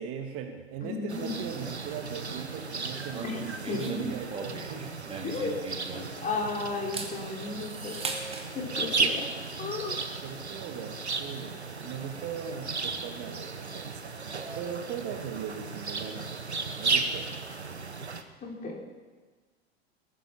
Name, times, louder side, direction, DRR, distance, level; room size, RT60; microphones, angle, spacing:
voice 1, 0.0-4.9 10.2-16.4 16.7-17.4, right 7 dB, 45° right, 5 dB, 1.7 m, -39 dB
voice 2, 0.8-1.3 3.2-3.4 3.7-4.0 5.2-5.6 5.9-8.0 8.5-9.3 9.6-10.0 18.4-18.8, left 4 dB, 25° left, 0 dB, 3.8 m, -34 dB
sound 1, 1.1-18.2, right 4 dB, 85° right, 1.1 m, -35 dB
sound 2, 3.1-6.4 6.8-8.5, right 4 dB, 20° right, 2.4 m, -39 dB
21.0 x 9.7 x 5.9 m, 1.4 s
figure-of-eight pair, 80°, 32 cm